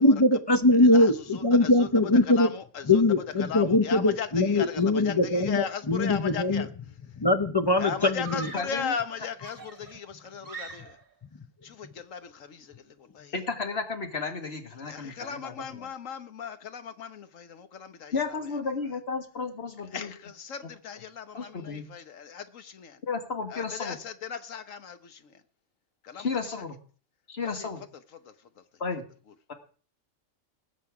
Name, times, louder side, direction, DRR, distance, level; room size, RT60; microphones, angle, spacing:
voice 1, 0.0-2.5 2.9-6.6 7.2-8.5, left 2 dB, 30° left, 0.4 m, -22 dB
voice 2, 0.9-1.9 2.2-3.0 3.4-6.7 7.8-11.0 11.6-13.3 14.8-18.1 19.9-23.0 23.5-25.4 26.0-26.3 27.6-27.7, left 7 dB, 80° left, 1.4 m, -37 dB
Screaming, 6.7-7.1 8.2-8.8 9.4-11.1, right 5 dB, 45° right, 2.2 m, -43 dB
voice 3, 8.5-8.9 13.3-15.9 18.1-20.1 21.3-21.9 23.0-24.0 26.1-26.8 27.3-27.8 28.8-29.0 29.5-29.6, left 4 dB, 55° left, 1.8 m, -33 dB
20.0 x 7.6 x 4.9 m
omnidirectional pair, 1.3 m